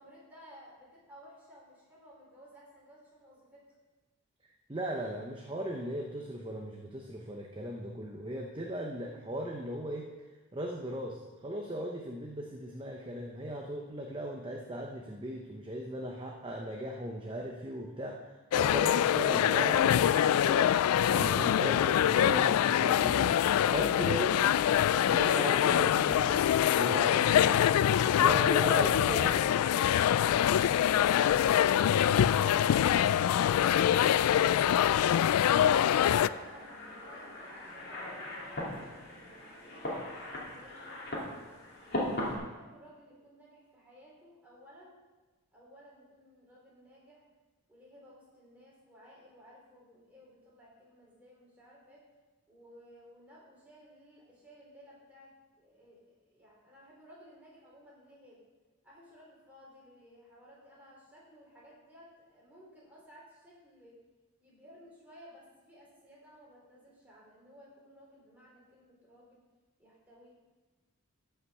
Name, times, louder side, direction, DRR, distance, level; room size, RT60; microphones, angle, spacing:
voice 1, 0.0-3.6 34.7-41.5 42.0-45.0 45.5-47.2 47.7-52.0 52.5-55.3 55.6-58.4 58.8-64.0 64.4-69.4 69.8-70.3, equal, 5° right, -6 dB, 3.8 m, -56 dB
voice 2, 4.7-10.1 10.5-24.5 25.1-26.4 26.8-27.4 28.2-29.4, right 1 dB, 25° right, 0 dB, 0.8 m, -37 dB
sound 1, 18.5-36.3, left 10 dB, 90° left, 0.3 m, -25 dB
sound 2, 28.5-42.4, left 1 dB, 45° left, 2.6 m, -42 dB
14.0 x 5.8 x 5.6 m, 1.2 s
head